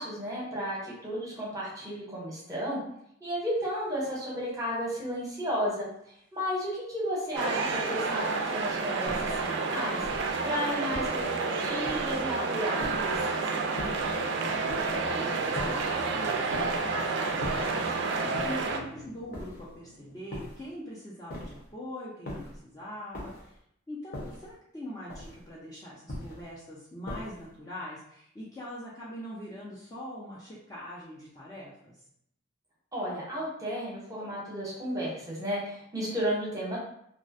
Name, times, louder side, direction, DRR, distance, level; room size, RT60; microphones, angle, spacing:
voice 1, 0.0-2.8 3.2-5.9 6.3-13.6 32.9-36.8, equal, 15° right, -6 dB, 0.7 m, -33 dB
sound 1, 5.0-5.2 9.7-9.8 12.7-20.2, left 2 dB, 90° left, 0.4 m, -49 dB
sound 2, 7.3-18.8, right 4 dB, 60° right, 0.3 m, -30 dB
sound 3, 9.1-9.5 10.0-10.4 10.9-11.3 11.8-12.2 12.8-13.2 13.8-14.1 14.7-15.0 15.6-15.9 16.5-16.9 17.4-17.8 18.3-18.7 19.3-19.7 20.3-20.7 21.3-21.7 22.3-22.6 23.1-23.5 24.1-24.5 25.1-25.5 26.1-26.5 27.1-27.5, left 1 dB, 50° left, 0.7 m, -40 dB
voice 2, 14.7-23.5 23.9-31.9, equal, 15° left, -7 dB, 0.4 m, -43 dB
2.3 x 2.1 x 2.5 m, 0.72 s
head